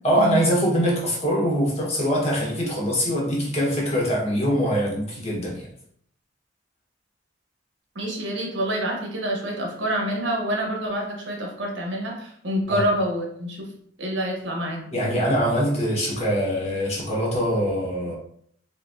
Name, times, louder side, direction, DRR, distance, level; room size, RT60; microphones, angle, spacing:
voice 1, 0.0-5.7 12.7-12.8 14.9-18.1, equal, 35° left, -4 dB, 1.4 m, -23 dB
voice 2, 7.9-13.7 14.0-14.8, right 1 dB, 80° right, 0 dB, 1.2 m, -27 dB
3.9 x 3.7 x 2.7 m, 0.65 s
head